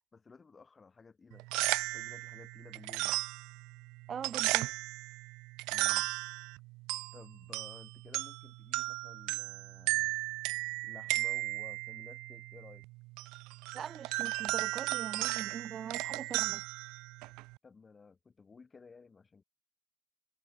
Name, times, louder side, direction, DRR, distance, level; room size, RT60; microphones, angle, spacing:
voice 1, 0.1-1.5 1.9-3.2 5.7-6.1 7.1-10.2 10.8-12.9 17.6-19.4, left 4 dB, 30° left, 6.7 m, -55 dB
sound 1, 1.3-17.6, right 24 dB, 70° right, 0.5 m, -36 dB
voice 2, 4.1-4.7 13.7-16.6, right 8 dB, 45° right, 0.9 m, -42 dB
hypercardioid pair, 65°, 0 cm